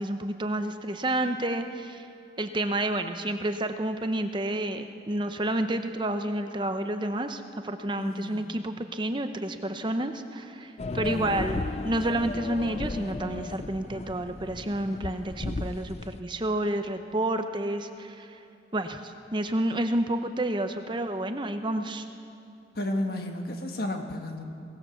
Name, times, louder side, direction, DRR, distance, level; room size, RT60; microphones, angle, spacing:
voice 1, 0.0-2.1 2.4-18.4 18.7-22.1, right 1 dB, 25° right, 7 dB, 0.8 m, -30 dB
voice 2, 8.0-8.5 10.9-11.5 22.7-24.4, left 1 dB, 55° left, 4 dB, 1.7 m, -33 dB
sound 1, 10.8-16.2, left 2 dB, 35° left, 0.5 m, -35 dB
23.0 x 18.0 x 7.2 m, 2.6 s
head